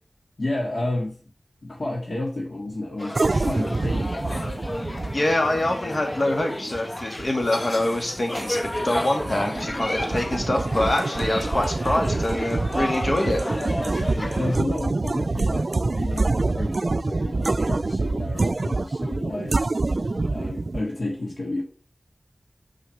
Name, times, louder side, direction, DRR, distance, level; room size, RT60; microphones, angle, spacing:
voice 1, 0.4-1.2 1.6-3.2 3.4-4.1 14.1-19.6 20.3-21.6, left 2 dB, 65° left, 0 dB, 1.9 m, -31 dB
sound 1, 3.0-14.6, left 1 dB, 35° left, 1.2 m, -32 dB
sound 2, 3.1-20.8, right 3 dB, 65° right, 0.4 m, -26 dB
voice 2, 5.1-13.4, left 1 dB, 50° left, 3 dB, 2.2 m, -25 dB
6.3 x 5.4 x 6.6 m, 0.41 s
wide cardioid pair, 50°, 0 cm